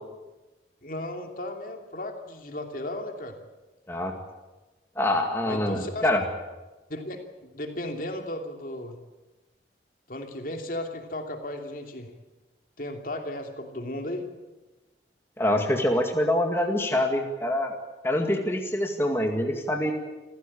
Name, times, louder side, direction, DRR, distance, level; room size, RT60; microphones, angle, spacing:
voice 1, 0.8-3.4 5.4-6.3 6.9-9.0 10.1-12.1 12.8-14.3, left 1 dB, 50° left, 4 dB, 2.8 m, -35 dB
voice 2, 5.0-6.2 15.4-17.7 18.0-19.9, left 1 dB, 15° left, 2 dB, 2.0 m, -25 dB
28.5 x 15.5 x 8.7 m, 1.1 s
head